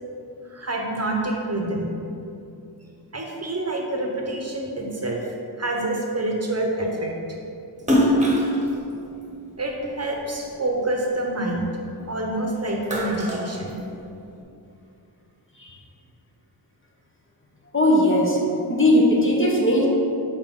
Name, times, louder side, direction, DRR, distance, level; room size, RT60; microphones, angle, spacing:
voice 1, 0.4-1.9 3.1-7.1 9.6-11.7 12.1-13.7, right 1 dB, 35° right, 0 dB, 0.9 m, -27 dB
Splash splatter, 7.8-10.3 10.8-12.2 12.6-14.3, equal, 15° right, 1.2 m, -24 dB
voice 2, 17.7-18.4 18.7-19.9, left 1 dB, 30° left, -2 dB, 1.1 m, -18 dB
7.1 x 4.2 x 3.8 m, 2.7 s
wide cardioid pair, 70°, 43 cm